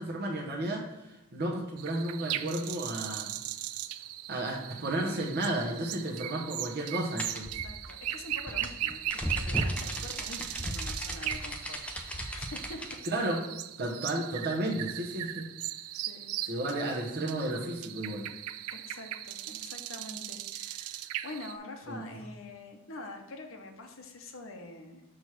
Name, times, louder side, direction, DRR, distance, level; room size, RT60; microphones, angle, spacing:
voice 1, 0.0-3.4 4.3-7.5 13.0-13.4 13.8-15.5 16.4-18.3 21.9-22.1, right 1 dB, 45° right, -2 dB, 0.8 m, -33 dB
sound 1, 1.8-21.6, right 13 dB, 80° right, 0.3 m, -38 dB
sound 2, 7.2-13.0, equal, 5° left, 0.5 m, -36 dB
voice 2, 7.5-12.8 13.2-13.3 15.9-16.3 18.7-25.0, left 2 dB, 65° left, 4 dB, 0.8 m, -46 dB
6.2 x 3.1 x 5.7 m, 0.95 s
head